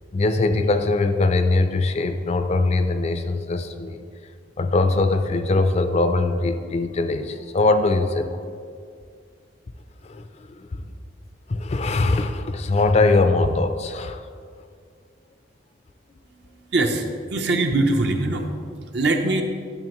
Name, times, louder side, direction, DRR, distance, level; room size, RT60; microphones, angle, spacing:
voice 1, 0.1-4.0 4.6-8.4 10.0-10.9 11.5-14.2, left 2 dB, 35° left, 8 dB, 0.4 m, -21 dB
voice 2, 16.7-18.5 18.9-19.4, right 2 dB, 60° right, 4 dB, 0.7 m, -22 dB
10.5 x 6.3 x 3.0 m, 2.2 s
head